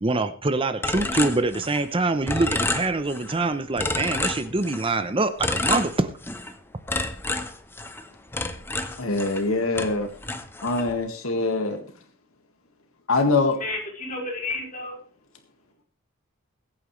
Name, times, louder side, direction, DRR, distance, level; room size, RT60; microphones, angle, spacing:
voice 1, 0.0-6.1, right 2 dB, 25° right, 11 dB, 0.7 m, -24 dB
sound 1, 0.8-2.0 2.3-3.4 3.8-4.9 5.4-6.5 6.9-9.5 9.7-10.9, left 2 dB, 10° left, 1.0 m, -29 dB
voice 2, 9.0-10.1 10.6-11.8 13.1-13.6, left 3 dB, 80° left, 5 dB, 1.8 m, -23 dB
voice 3, 13.5-15.0, left 2 dB, 40° left, -1 dB, 5.0 m, -31 dB
22.0 x 8.9 x 3.2 m, 0.39 s
head